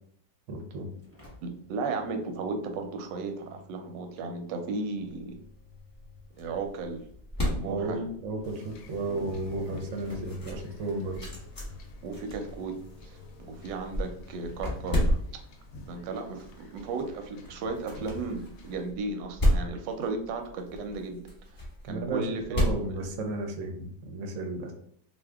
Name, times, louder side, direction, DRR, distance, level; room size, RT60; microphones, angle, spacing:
voice 1, 0.5-0.9 7.7-11.2 21.9-24.7, right 2 dB, 65° right, 4 dB, 0.8 m, -33 dB
Engine / Slam, 0.8-15.9, left 2 dB, 10° right, 0.7 m, -50 dB
voice 2, 1.4-5.4 6.4-7.0 7.5-8.0 9.1-9.2 12.0-12.8 13.0-15.2 15.9-21.2 21.5-23.0, right 3 dB, 90° right, 5 dB, 1.3 m, -35 dB
sound 1, 5.2-23.8, equal, 25° left, 0.9 m, -34 dB
Wind / Ocean / Boat Water vehicle, 8.4-18.8, left 2 dB, 70° left, 0.8 m, -48 dB
2.7 x 2.4 x 3.3 m, 0.63 s
omnidirectional pair, 1.9 m